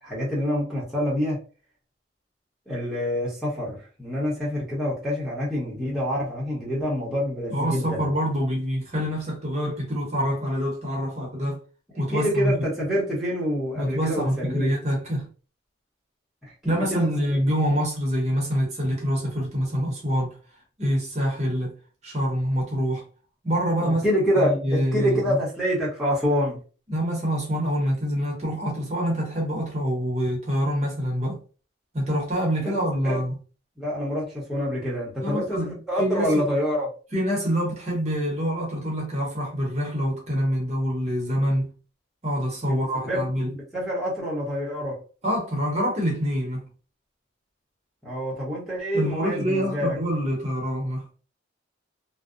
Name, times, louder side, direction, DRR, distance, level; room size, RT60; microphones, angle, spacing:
voice 1, 0.0-1.4 2.7-8.1 12.1-14.7 16.4-17.4 23.8-26.6 32.6-32.8 33.0-33.2 33.8-36.9 42.7-42.8 43.1-43.2 43.5-45.0 48.0-50.0, equal, ahead, 0.8 m, -26 dB
voice 2, 7.5-11.6 12.0-12.5 13.8-15.3 16.6-20.4 20.8-21.8 22.0-23.0 23.4-24.0 24.3-25.4 26.9-31.4 31.9-33.3 35.2-35.7 36.0-36.4 37.1-41.7 42.2-43.5 45.2-46.7 48.9-51.1, equal, 35° right, 0.8 m, -26 dB
2.6 x 2.0 x 2.4 m
head